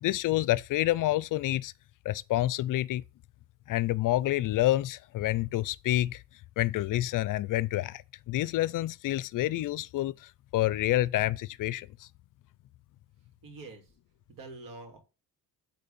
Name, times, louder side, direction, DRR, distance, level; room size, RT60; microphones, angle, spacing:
voice 1, 0.0-1.7 2.0-3.0 3.7-6.2 6.6-8.0 8.3-12.1, left 15 dB, 60° left, 0.5 m, -28 dB
voice 2, 13.4-13.9 14.3-15.0, right 3 dB, 65° right, 3.3 m, -45 dB
8.0 x 4.4 x 6.8 m
cardioid pair, 125°, 36 cm